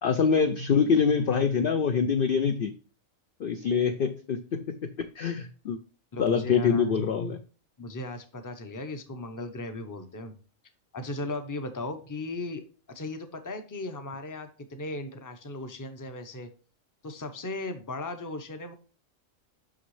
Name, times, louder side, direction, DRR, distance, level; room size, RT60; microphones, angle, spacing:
voice 1, 0.0-2.7 3.4-5.8 6.2-7.4, left 6 dB, 60° left, 7 dB, 0.6 m, -25 dB
voice 2, 6.1-6.9 7.8-10.3 10.9-12.6 12.9-16.5 17.0-18.7, left 2 dB, 20° left, 7 dB, 0.6 m, -37 dB
6.2 x 5.9 x 3.2 m, 0.37 s
omnidirectional pair, 1.4 m